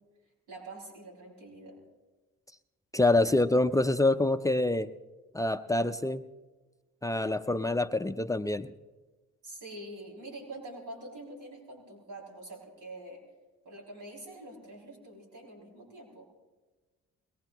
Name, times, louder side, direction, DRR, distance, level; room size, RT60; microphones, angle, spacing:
voice 1, 0.5-1.7 9.4-13.2 13.6-16.2, right 1 dB, 90° right, -3 dB, 6.7 m, -45 dB
voice 2, 2.9-4.9 5.3-6.2 7.0-8.7, left 2 dB, 10° left, 9 dB, 0.5 m, -26 dB
22.5 x 20.5 x 3.0 m, 1.2 s
cardioid pair, 90°, 30 cm